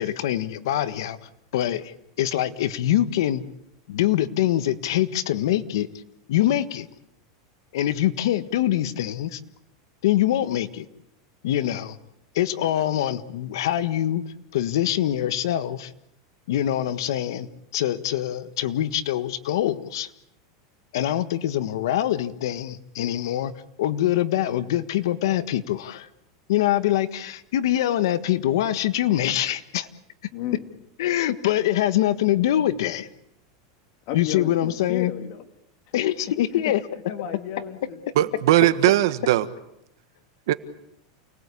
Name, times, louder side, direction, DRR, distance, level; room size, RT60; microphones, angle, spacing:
voice 1, 0.0-3.4 3.9-5.9 6.3-6.9 7.7-9.4 10.0-10.9 11.4-12.0 12.3-14.2 14.5-15.9 16.5-20.1 20.9-23.5 23.8-26.1 26.5-29.9 31.0-33.1 34.1-35.1 35.9-36.8, left 12 dB, 75° left, 11 dB, 1.5 m, -24 dB
voice 2, 30.3-30.7 34.1-35.4 36.5-36.7 37.1-38.3 38.7-38.8, left 10 dB, 50° left, 6 dB, 3.0 m, -34 dB
voice 3, 38.1-39.5 40.5-40.6, right 14 dB, 70° right, 12 dB, 1.5 m, -19 dB
29.0 x 19.0 x 8.5 m, 0.83 s
supercardioid pair, 150°, 2 cm